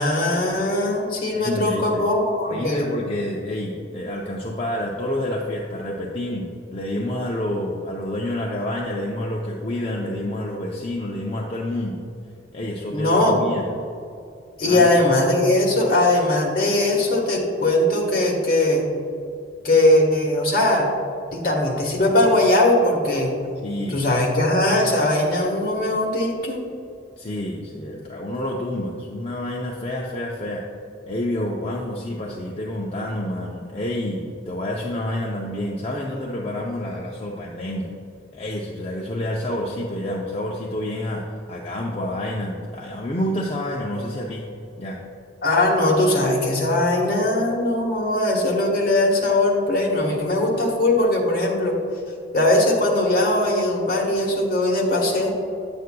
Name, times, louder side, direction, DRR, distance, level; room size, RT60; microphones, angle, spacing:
voice 1, 0.0-2.8 12.9-13.4 14.6-18.9 19.6-20.9 21.3-23.4 23.9-26.6 45.4-51.8 52.3-55.3, left 1 dB, 50° left, -1 dB, 1.3 m, -20 dB
voice 2, 1.3-2.0 2.5-12.0 12.5-13.7 14.6-14.9 23.6-24.1 27.2-30.6 31.1-37.9 38.3-44.5 44.8-45.0, left 1 dB, 30° left, -2 dB, 0.5 m, -28 dB
9.3 x 8.0 x 2.2 m, 2.5 s
head